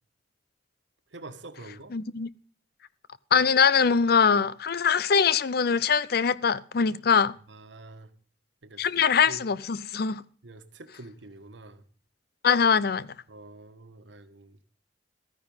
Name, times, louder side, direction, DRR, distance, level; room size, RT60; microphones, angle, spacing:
voice 1, 1.1-1.9 7.5-8.1 8.6-8.9 9.3-9.4 10.4-11.8 13.3-14.6, right 2 dB, 85° right, 1.4 m, -46 dB
voice 2, 1.9-2.3 3.3-7.3 8.8-10.2 12.4-13.1, left 6 dB, 60° left, 0.5 m, -22 dB
13.5 x 9.7 x 5.5 m
head